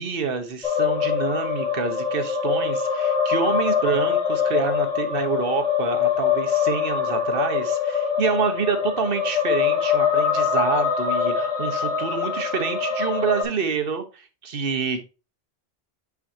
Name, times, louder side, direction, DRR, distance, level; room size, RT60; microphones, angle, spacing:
voice 1, 0.0-15.0, right 6 dB, 60° right, 7 dB, 1.2 m, -27 dB
sound 1, 0.6-13.4, left 7 dB, 5° left, 2.1 m, -24 dB
6.4 x 5.9 x 2.7 m, 0.31 s
omnidirectional pair, 1.1 m